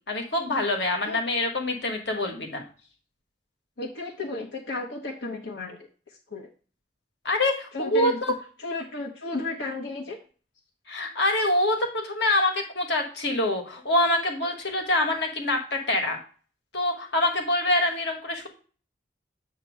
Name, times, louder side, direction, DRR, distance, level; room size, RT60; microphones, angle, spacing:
voice 1, 0.1-2.6 7.2-8.3 10.9-16.2 16.7-18.5, left 1 dB, 70° left, 3 dB, 1.6 m, -25 dB
voice 2, 3.8-5.8 6.1-6.5 7.7-8.2 8.6-10.2, left 3 dB, 85° left, -1 dB, 1.2 m, -33 dB
8.3 x 3.0 x 6.3 m, 0.40 s
head